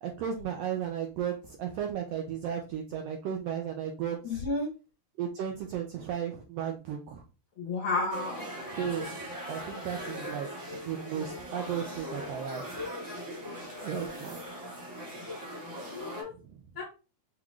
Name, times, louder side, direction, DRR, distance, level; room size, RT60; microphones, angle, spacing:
voice 1, 0.0-4.4 5.2-7.2 8.7-9.1 9.5-12.8 13.8-14.4 16.4-16.6, right 8 dB, 85° right, 2 dB, 1.4 m, -35 dB
voice 2, 4.2-4.7 7.6-8.5 15.7-16.3 16.7-16.8, left 3 dB, 60° left, -1 dB, 1.5 m, -32 dB
sound 1, 8.1-16.2, equal, 45° right, 0.9 m, -40 dB
5.8 x 2.4 x 3.0 m, 0.31 s
omnidirectional pair, 3.4 m